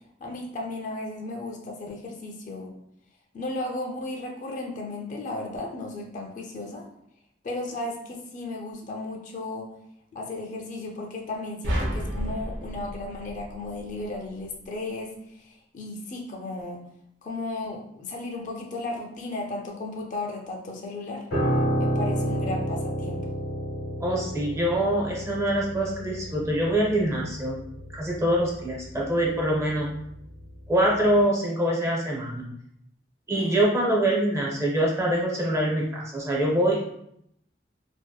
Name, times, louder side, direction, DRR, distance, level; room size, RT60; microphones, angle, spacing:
voice 1, 0.2-2.7 3.3-6.8 7.4-9.7 10.1-16.8 17.2-21.3 21.8-23.2 33.4-33.6, left 2 dB, 45° left, 0 dB, 0.3 m, -35 dB
sound 1, 11.6-14.0, equal, 85° right, 0.5 m, -31 dB
Piano, 21.3-30.7 31.0-31.2, equal, 90° left, 0.8 m, -31 dB
voice 2, 24.0-27.6 27.9-29.9 30.7-32.5 33.3-36.8, right 1 dB, 15° right, -3 dB, 0.5 m, -24 dB
2.6 x 2.0 x 2.2 m, 0.75 s
head